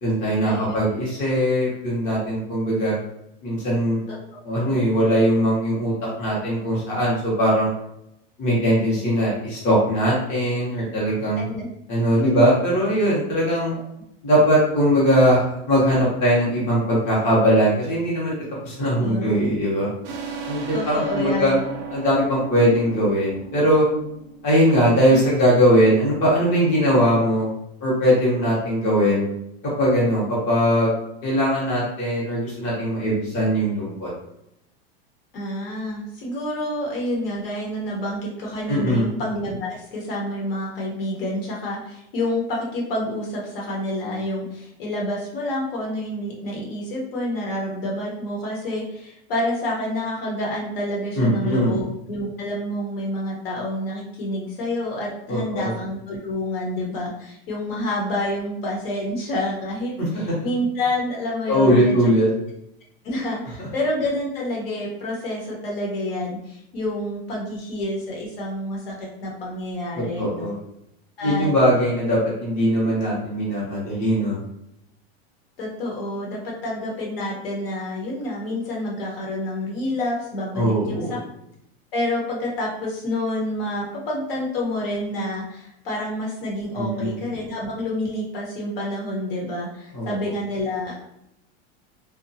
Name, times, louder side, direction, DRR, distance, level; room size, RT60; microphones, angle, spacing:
voice 1, 0.0-3.0 3.4-4.0 4.4-5.9 6.2-7.7 8.4-11.4 11.9-13.7 14.2-18.4 18.6-19.9 20.5-21.5 21.9-23.9 24.4-27.5 27.8-29.3 29.8-31.0 31.2-34.1 38.7-39.0 51.2-51.8 55.3-55.7 60.0-60.4 61.5-62.3 63.6-63.7 69.9-70.6 71.2-74.4 80.5-81.1 86.8-87.1 89.9-90.1, equal, 25° left, -6 dB, 0.7 m, -20 dB
voice 2, 4.1-4.9 11.4-11.7 12.2-12.3 13.7-13.8 19.0-19.6 20.7-21.6 35.3-62.1 63.0-70.5 71.2-71.5 75.6-81.2 81.9-91.1, left 1 dB, 65° left, -2 dB, 1.0 m, -28 dB
sound 1, 20.0-25.4, right 5 dB, 45° right, 0.5 m, -35 dB
2.8 x 2.1 x 2.6 m, 0.79 s
supercardioid pair, 175°, 31 cm